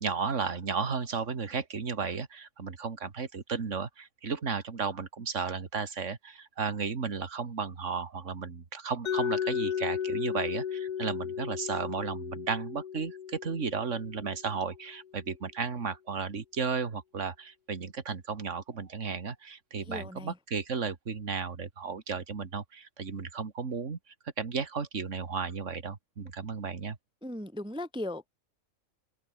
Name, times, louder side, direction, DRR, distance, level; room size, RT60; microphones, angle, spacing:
voice 1, 0.0-24.0 24.4-27.0, right 5 dB, 60° right, 2.4 m, -34 dB
Mallet percussion, 9.1-14.9, left 8 dB, 50° left, 0.6 m, -35 dB
voice 2, 19.9-20.4 27.2-28.3, left 1 dB, 5° right, 0.5 m, -37 dB
open air
omnidirectional pair, 1.4 m